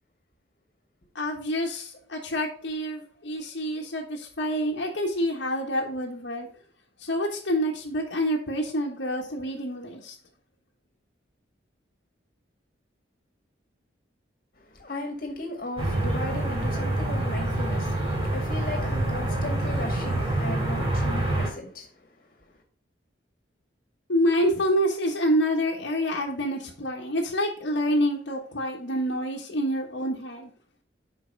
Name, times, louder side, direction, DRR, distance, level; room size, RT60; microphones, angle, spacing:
voice 1, 1.1-6.5 7.0-10.1 24.1-30.5, equal, 75° left, 1.3 m, -27 dB
voice 2, 14.5-22.6, left 2 dB, 50° left, 1.9 m, -37 dB
sound 1, 15.8-21.5, right 1 dB, 30° right, 2.5 m, -26 dB
5.4 x 5.3 x 5.2 m
head